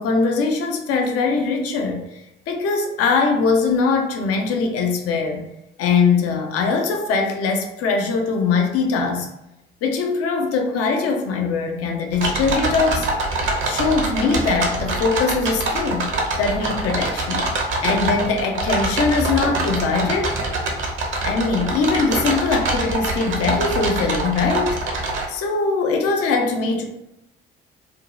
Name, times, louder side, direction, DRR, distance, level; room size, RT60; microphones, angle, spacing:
voice 1, 0.0-5.4 5.8-9.3 9.8-13.1 13.6-16.1 16.4-17.5 17.8-20.4 21.2-24.8 25.3-26.8, left 4 dB, 50° left, 3 dB, 0.5 m, -21 dB
sound 1, 12.1-25.2, right 2 dB, 40° right, 0.7 m, -24 dB
2.6 x 2.1 x 2.9 m, 0.87 s
figure-of-eight pair, 45°, 30 cm